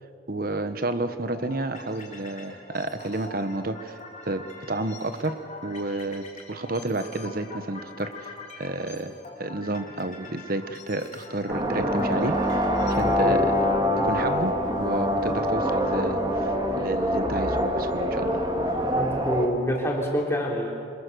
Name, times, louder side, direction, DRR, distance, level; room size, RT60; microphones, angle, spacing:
voice 1, 0.3-4.0 4.2-8.3 8.6-9.1 9.4-13.5 14.0-18.4, right 2 dB, 50° right, 10 dB, 1.2 m, -31 dB
sound 1, 1.4-13.1, left 3 dB, 35° left, 3.4 m, -44 dB
sound 2, 11.5-19.5, equal, 20° right, 2.1 m, -25 dB
voice 2, 13.0-13.4 19.0-20.7, equal, 15° left, -2 dB, 3.6 m, -27 dB
26.5 x 21.5 x 6.9 m, 2.5 s
head